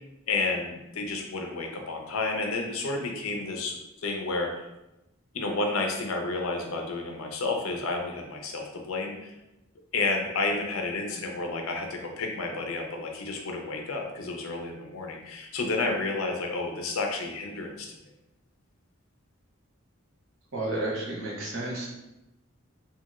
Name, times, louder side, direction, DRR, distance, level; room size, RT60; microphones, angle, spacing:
voice 1, 0.3-4.7 5.3-9.3 9.9-17.9, left 3 dB, 85° left, 2 dB, 0.5 m, -31 dB
voice 2, 20.5-21.9, right 2 dB, 65° right, -4 dB, 0.9 m, -31 dB
2.9 x 2.7 x 2.3 m, 0.93 s
head